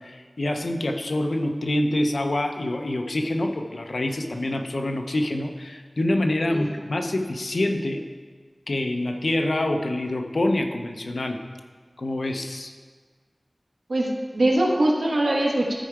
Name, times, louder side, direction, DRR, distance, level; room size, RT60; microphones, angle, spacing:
voice 1, 0.0-8.1 8.7-11.4 12.0-12.7, left 1 dB, 80° left, 5 dB, 0.7 m, -26 dB
voice 2, 13.9-15.7, right 1 dB, 90° right, -2 dB, 1.5 m, -22 dB
13.5 x 4.6 x 4.7 m, 1.5 s
wide cardioid pair, 60°, 0 cm